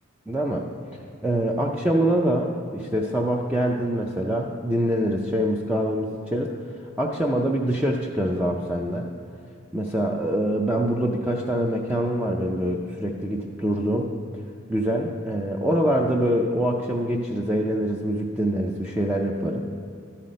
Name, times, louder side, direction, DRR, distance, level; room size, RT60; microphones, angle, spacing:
voice 1, 0.3-0.7 1.2-6.5 7.0-9.1 9.7-14.1 14.7-19.6, right 1 dB, 5° right, -1 dB, 0.5 m, -24 dB
12.5 x 5.9 x 5.1 m, 2.5 s
head